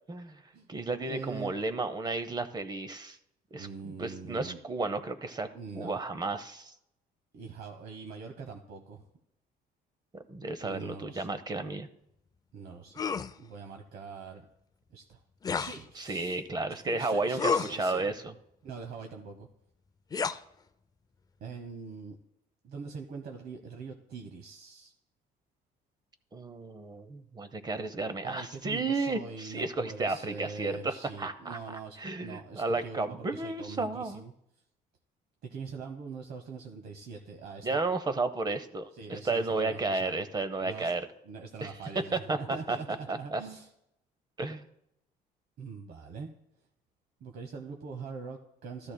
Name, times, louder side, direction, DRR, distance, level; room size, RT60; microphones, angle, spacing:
voice 1, 0.1-0.4 0.7-3.2 3.5-5.5 5.7-6.7 10.1-11.9 15.9-18.3 26.3-34.2 37.6-41.0 41.6-41.7 42.1-43.4 44.4-44.6, right 3 dB, 25° right, 10 dB, 0.7 m, -33 dB
voice 2, 1.0-1.6 3.6-4.6 5.5-6.0 7.3-9.0 10.6-11.4 12.5-13.0 13.4-14.4 14.9-15.2 15.5-16.4 16.8-18.1 18.6-19.5 21.4-22.2 22.6-24.9 28.2-34.3 35.4-37.8 38.9-40.2 40.6-43.7 45.6-46.3 47.2-48.9, right 5 dB, 65° right, 4 dB, 1.0 m, -43 dB
sound 1, 13.0-13.3 15.4-15.8 17.4-17.8 20.1-20.4, left 5 dB, 20° left, 0.4 m, -30 dB
13.5 x 12.5 x 2.2 m, 0.80 s
cardioid pair, 110°, 17 cm